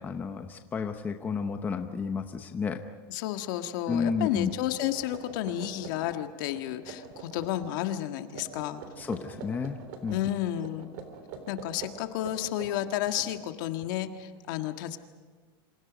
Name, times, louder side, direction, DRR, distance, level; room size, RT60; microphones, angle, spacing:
voice 1, 0.0-2.8 3.9-4.5 9.0-10.2, left 5 dB, 15° left, 6 dB, 0.9 m, -31 dB
voice 2, 3.1-8.8 10.1-10.9 11.5-15.0, left 12 dB, 55° left, 7 dB, 1.7 m, -32 dB
sound 1, 3.4-3.5 3.9-6.2 6.5-7.7 8.3-10.2 10.6-13.9, right 6 dB, 50° right, 3.6 m, -45 dB
28.5 x 26.5 x 5.2 m, 1.5 s
supercardioid pair, 170°, 13 cm